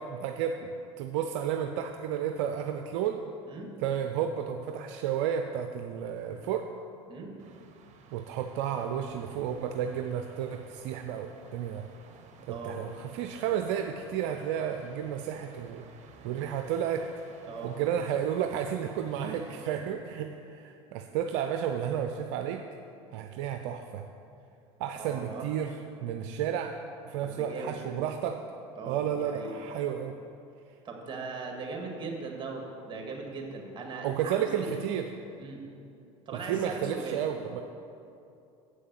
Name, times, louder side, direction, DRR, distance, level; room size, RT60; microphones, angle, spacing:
voice 1, 0.0-3.2 3.8-6.7 8.1-11.8 12.5-15.8 16.2-17.1 17.6-22.6 23.1-24.0 24.8-25.7 26.0-26.8 27.0-28.4 28.9-30.1 34.0-35.1 36.5-37.6, right 9 dB, 65° right, 6 dB, 0.5 m, -32 dB
sound 1, 7.4-19.7, right 5 dB, 45° right, 1.1 m, -54 dB
voice 2, 12.5-12.8 17.5-17.7 19.2-19.6 24.9-25.5 27.2-28.0 28.8-29.5 30.8-34.8 35.4-35.6 36.3-37.2, right 3 dB, 30° right, 1 dB, 2.1 m, -39 dB
7.7 x 6.4 x 7.7 m, 2.7 s
hypercardioid pair, 85°, 16 cm